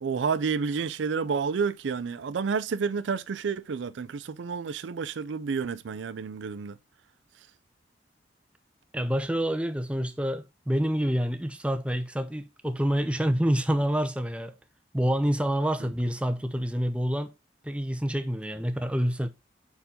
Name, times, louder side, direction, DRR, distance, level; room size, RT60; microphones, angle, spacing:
voice 1, 0.0-6.8 15.8-15.9, right 5 dB, 90° right, 0.4 m, -30 dB
voice 2, 8.9-14.5 14.9-17.3 17.6-19.3, equal, 5° right, 0.5 m, -27 dB
5.3 x 4.5 x 4.2 m
head